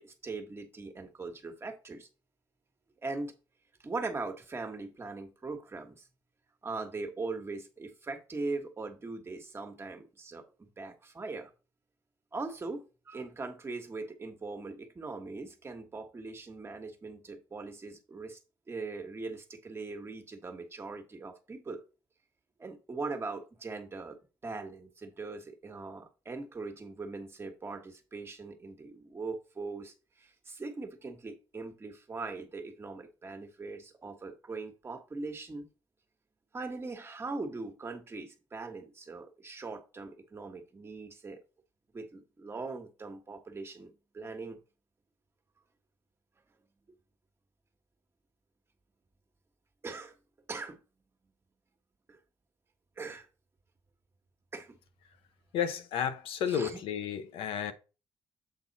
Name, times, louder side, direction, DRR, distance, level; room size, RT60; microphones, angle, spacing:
voice 1, 0.0-2.1 3.0-3.3 3.8-6.1 6.6-10.4 10.8-11.5 12.3-18.4 18.7-21.8 22.6-24.2 24.4-35.7 36.5-41.4 41.9-44.6 49.8-50.1 50.5-50.8 52.1-52.2 53.0-53.3 54.5-54.8 56.5-56.8, right 3 dB, 25° right, 1.4 m, -40 dB
voice 2, 55.5-57.7, left 8 dB, 85° left, 0.9 m, -32 dB
7.7 x 4.2 x 4.1 m
cardioid pair, 105°, 9 cm